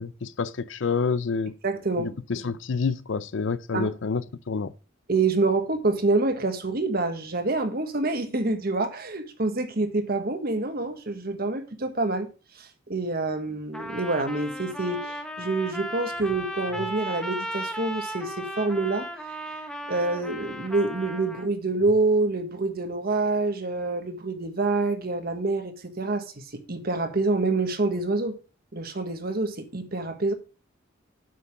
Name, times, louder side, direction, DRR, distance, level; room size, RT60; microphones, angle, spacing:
voice 1, 0.0-1.6 2.0-4.7, left 4 dB, 65° left, 0.5 m, -28 dB
voice 2, 1.6-2.1 3.7-3.9 5.1-19.1 19.9-28.4 28.7-30.3, right 3 dB, 50° right, 1.4 m, -27 dB
Trumpet, 13.7-21.5, equal, 5° left, 1.1 m, -36 dB
7.7 x 5.8 x 5.9 m
head